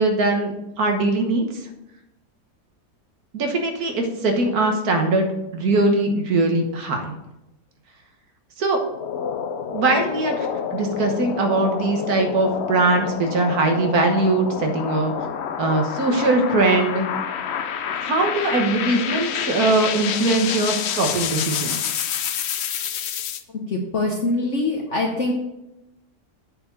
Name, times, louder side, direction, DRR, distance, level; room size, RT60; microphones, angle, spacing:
voice 1, 0.0-1.6 3.3-5.3 5.5-7.1 8.6-8.8 9.7-15.1 15.6-17.1 18.1-21.8, right 2 dB, 65° right, 4 dB, 1.7 m, -21 dB
sound 1, 8.8-23.4, left 8 dB, 75° left, 0.6 m, -28 dB
voice 2, 23.5-25.3, left 2 dB, 50° left, 0 dB, 1.2 m, -24 dB
8.4 x 4.5 x 7.0 m, 0.93 s
omnidirectional pair, 1.8 m